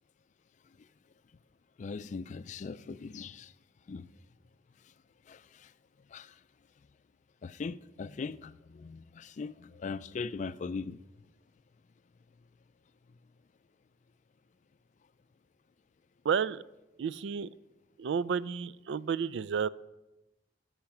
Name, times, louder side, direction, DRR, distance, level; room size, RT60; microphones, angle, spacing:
voice 1, 1.8-3.5 3.9-4.1 5.3-5.7 6.1-6.3 7.4-11.0, left 4 dB, 40° left, 0.3 m, -40 dB
voice 2, 16.2-16.6 17.0-17.5 18.0-19.7, right 6 dB, 85° right, 0.4 m, -31 dB
10.5 x 8.0 x 5.9 m
head